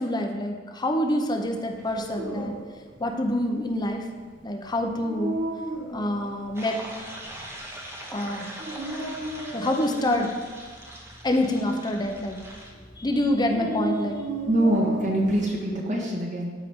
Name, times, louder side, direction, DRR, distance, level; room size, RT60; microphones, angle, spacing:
voice 1, 0.0-2.5 3.0-4.1 4.4-5.4 5.9-6.8 8.1-8.5 9.5-10.3 11.2-12.4 12.9-14.2, left 1 dB, 25° left, 3 dB, 0.7 m, -26 dB
Dog, 1.7-15.5, right 1 dB, 65° right, 2.0 m, -35 dB
sound 1, 6.5-12.7, right 1 dB, 15° right, 1.0 m, -41 dB
voice 2, 14.4-16.5, right 1 dB, 45° right, -2 dB, 1.5 m, -24 dB
12.5 x 4.6 x 3.6 m, 1.5 s
head